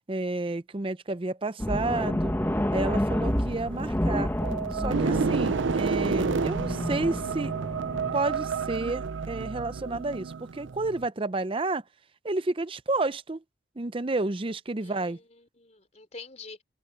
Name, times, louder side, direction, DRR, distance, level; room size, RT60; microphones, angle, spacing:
voice 1, 0.1-2.3 2.7-4.3 4.7-7.5 8.1-11.8 12.2-13.4 13.8-15.2, right 2 dB, 25° right, 0.6 m, -30 dB
sound 1, 1.6-8.1, equal, 10° left, 1.1 m, -29 dB
sound 2, 3.3-11.1, right 5 dB, 75° right, 0.5 m, -30 dB
voice 2, 14.8-16.6, left 4 dB, 35° left, 4.1 m, -46 dB
open air
head